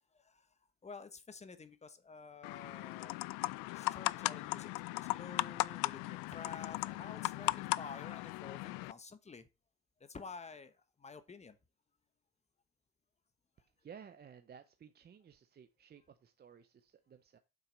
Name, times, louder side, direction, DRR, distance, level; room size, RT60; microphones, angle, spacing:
voice 1, 0.1-0.5 0.8-3.2 3.7-9.5 10.0-10.7 11.0-11.6, left 4 dB, 20° left, 1.1 m, -50 dB
sound 1, 2.4-8.9, left 21 dB, 85° left, 0.5 m, -37 dB
voice 2, 13.8-17.4, right 7 dB, 30° right, 0.7 m, -56 dB
7.8 x 5.9 x 5.1 m
cardioid pair, 130°, 34 cm